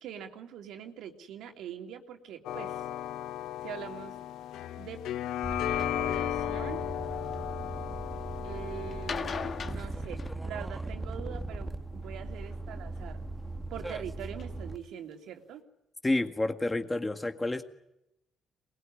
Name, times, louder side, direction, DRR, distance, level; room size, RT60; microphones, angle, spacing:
voice 1, 0.0-2.8 3.6-4.1 4.8-5.0 5.5-6.8 8.4-13.2 13.7-15.6, right 9 dB, 85° right, 4 dB, 3.2 m, -43 dB
sound 1, 2.4-9.7, left 12 dB, 85° left, 0.9 m, -35 dB
sound 2, 5.4-14.8, right 2 dB, 10° right, 1.6 m, -39 dB
sound 3, 5.8-6.0 6.7-7.3 8.9-10.9 12.5-13.0 13.7-13.8 14.4-14.5 14.8-14.9 15.1-15.2, left 5 dB, 50° left, 1.8 m, -39 dB
voice 2, 16.0-17.6, left 2 dB, 20° left, 6 dB, 1.9 m, -29 dB
24.0 x 21.5 x 9.8 m, 0.84 s
cardioid pair, 90°, 0 cm